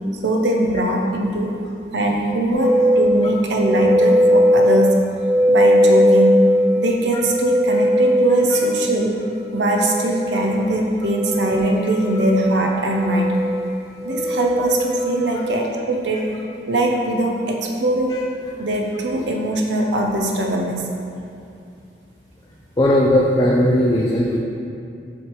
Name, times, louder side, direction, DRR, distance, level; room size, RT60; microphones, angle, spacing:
voice 1, 0.2-1.5 1.9-5.0 5.5-6.4 6.8-9.2 9.5-13.4 14.0-16.2 16.7-18.1 18.6-20.8, right 1 dB, 80° right, 1 dB, 0.6 m, -21 dB
sound 1, 2.5-15.5, equal, 60° left, 0.9 m, -19 dB
voice 2, 22.8-24.4, left 1 dB, 20° left, -3 dB, 0.4 m, -17 dB
7.2 x 3.3 x 4.5 m, 2.5 s
head